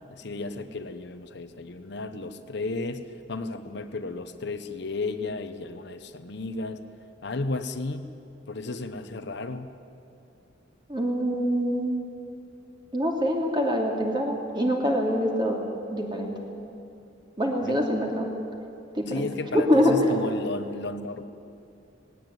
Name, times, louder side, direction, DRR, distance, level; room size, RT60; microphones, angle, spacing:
voice 1, 0.1-6.8 7.2-8.1 8.5-9.7 17.6-18.0 19.1-21.2, left 2 dB, 65° left, 9 dB, 1.0 m, -33 dB
voice 2, 10.9-12.0 12.9-15.6 15.9-16.3 17.4-18.3 18.9-19.3 19.5-20.1, equal, 25° right, 0 dB, 2.9 m, -24 dB
19.0 x 17.5 x 9.2 m, 2.6 s
head